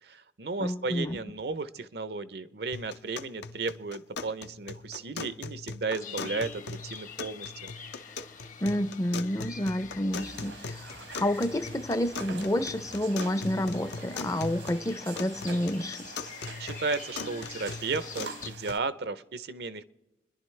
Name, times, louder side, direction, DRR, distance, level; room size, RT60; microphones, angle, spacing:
voice 1, 0.0-7.5 16.6-19.8, right 3 dB, 60° right, 0.6 m, -34 dB
voice 2, 0.6-1.2 8.6-16.1, left 1 dB, 20° left, 0.5 m, -29 dB
sound 1, 2.7-18.7, left 4 dB, 70° left, 0.7 m, -41 dB
sound 2, 6.0-18.5, left 6 dB, 45° left, 0.9 m, -46 dB
sound 3, 10.1-18.8, right 5 dB, 80° right, 1.3 m, -47 dB
29.0 x 11.0 x 3.2 m
head